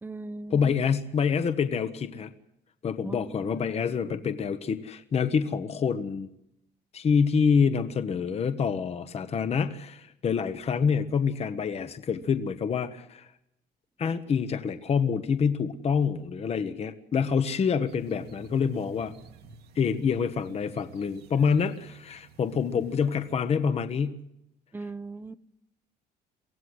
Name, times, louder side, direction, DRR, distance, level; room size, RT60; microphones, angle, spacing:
voice 1, 0.0-0.8 3.0-4.2 24.7-25.4, right 3 dB, 10° right, 14 dB, 0.7 m, -40 dB
voice 2, 0.5-2.3 2.8-6.3 6.9-13.3 14.0-19.1 19.8-24.2, left 6 dB, 40° left, 10 dB, 1.1 m, -27 dB
sound 1, 17.9-23.3, right 5 dB, 70° right, 1.8 m, -51 dB
24.0 x 16.0 x 7.9 m, 0.81 s
cardioid pair, 110°, 17 cm